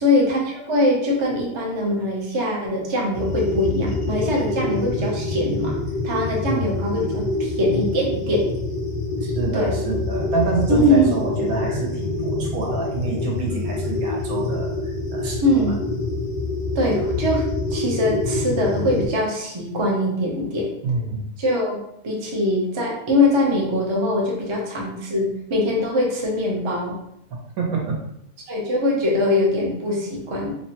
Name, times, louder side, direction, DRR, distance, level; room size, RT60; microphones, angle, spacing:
voice 1, 0.0-5.8 6.0-8.5 9.5-9.7 10.7-11.1 15.4-15.7 16.7-17.4 17.7-20.7 21.4-21.8 22.0-26.9 28.5-30.5, left 1 dB, 40° right, -2 dB, 0.4 m, -22 dB
sound 1, 3.1-19.1, left 2 dB, 85° left, 1.2 m, -26 dB
voice 2, 9.2-15.6 20.8-21.2 27.6-28.0, right 3 dB, 85° right, -2 dB, 1.3 m, -27 dB
3.3 x 2.1 x 2.8 m, 0.77 s
omnidirectional pair, 1.5 m